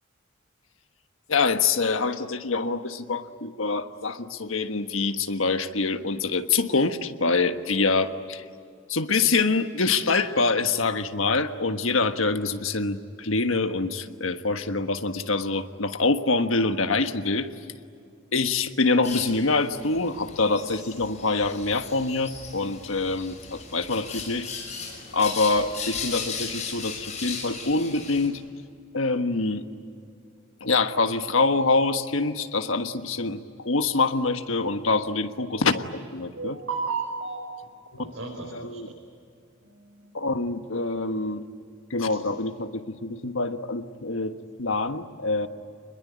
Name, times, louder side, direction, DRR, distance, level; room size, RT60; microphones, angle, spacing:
voice 1, 1.3-8.4 8.9-17.5 18.3-24.5 25.1-28.4 28.9-29.6 30.6-36.6 37.9-38.1 38.4-38.9 40.1-41.4 41.9-45.5, left 3 dB, 80° left, 8 dB, 1.5 m, -25 dB
sound 1, 19.0-28.3, left 5 dB, 35° left, 6.1 m, -37 dB
voice 2, 36.3-38.9 39.6-40.1 42.1-42.2, right 4 dB, 90° right, -2 dB, 5.3 m, -34 dB
27.5 x 21.5 x 9.6 m, 2.4 s
head